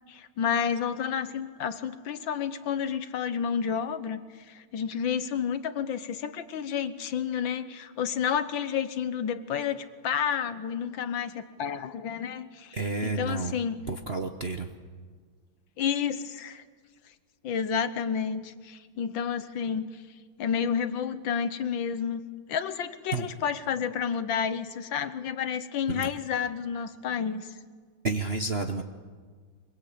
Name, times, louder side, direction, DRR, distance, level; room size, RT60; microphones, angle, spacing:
voice 1, 0.1-12.8 13.0-13.8 15.8-16.6 17.4-20.0 20.4-22.2 22.5-27.5, left 7 dB, 65° left, 12 dB, 1.6 m, -30 dB
voice 2, 12.7-13.6 13.9-14.7 23.1-23.2 25.9-26.1 28.0-28.8, right 3 dB, 40° right, 6 dB, 0.9 m, -30 dB
23.5 x 23.0 x 8.6 m, 1.6 s
omnidirectional pair, 2.4 m